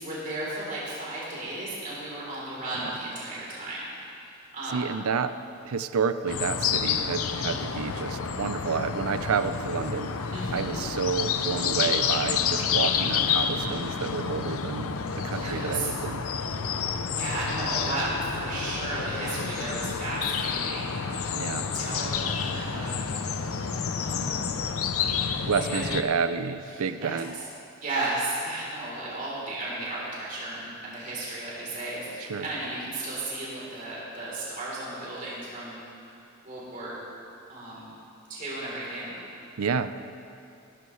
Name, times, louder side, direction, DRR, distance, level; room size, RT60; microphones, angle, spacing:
voice 1, 0.0-3.8 4.2-5.0 10.3-10.7 15.3-15.9 17.1-21.5 21.7-23.0 23.4-24.7 25.6-25.8 26.7-27.4 27.8-35.8 36.4-37.0 37.5-37.9 38.3-39.2, right 2 dB, 40° right, -7 dB, 3.5 m, -34 dB
voice 2, 4.7-5.3 5.6-10.1 10.5-16.2 21.3-21.7 25.4-27.4 32.3-32.5 39.6-39.9, right 5 dB, 85° right, 12 dB, 0.5 m, -30 dB
sound 1, 6.3-26.0, left 6 dB, 80° left, 0.6 m, -29 dB
17.0 x 12.5 x 3.2 m, 2.6 s
head